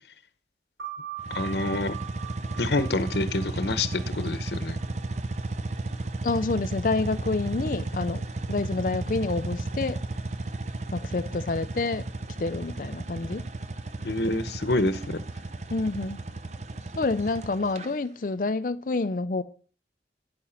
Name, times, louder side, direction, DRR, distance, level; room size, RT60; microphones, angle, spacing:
sound 1, 0.8-6.0, right 10 dB, 90° right, 4.3 m, -42 dB
sound 2, 1.2-17.9, right 2 dB, 40° right, 0.7 m, -34 dB
voice 1, 1.3-1.9 2.6-4.8 14.0-15.2, left 2 dB, 75° left, 0.9 m, -27 dB
voice 2, 6.2-8.2 8.5-10.0 10.9-12.1 12.4-13.5 15.7-16.2 17.0-19.4, left 3 dB, 50° left, 0.5 m, -28 dB
10.5 x 8.9 x 5.8 m
head